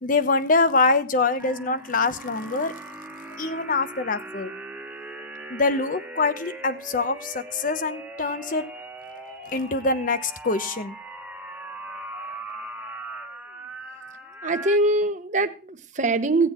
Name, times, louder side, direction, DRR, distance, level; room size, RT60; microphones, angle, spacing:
voice 1, 0.0-2.7 3.4-4.5 5.5-8.7 9.3-11.0 12.1-12.4, left 3 dB, 45° left, 12 dB, 1.0 m, -24 dB
sound 1, 1.4-14.8, right 2 dB, 5° right, 1.4 m, -39 dB
voice 2, 14.4-16.5, right 2 dB, 40° right, 8 dB, 1.0 m, -23 dB
16.5 x 7.9 x 4.5 m, 0.34 s
head